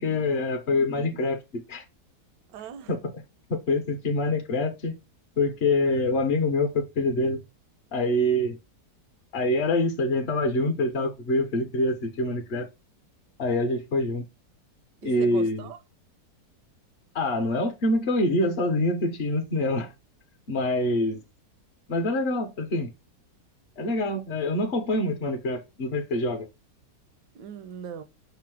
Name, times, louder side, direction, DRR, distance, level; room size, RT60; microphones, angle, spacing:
voice 1, 0.0-1.8 2.9-3.0 3.5-4.9 5.4-7.4 7.9-8.6 9.3-12.7 13.4-14.2 15.0-15.7 17.1-19.9 20.5-21.2 21.9-22.9 23.8-26.5, left 2 dB, 55° left, 0.7 m, -25 dB
voice 2, 2.5-2.9 15.0-15.8 27.3-28.0, right 8 dB, 80° right, 1.2 m, -39 dB
5.9 x 2.0 x 4.5 m
omnidirectional pair, 1.9 m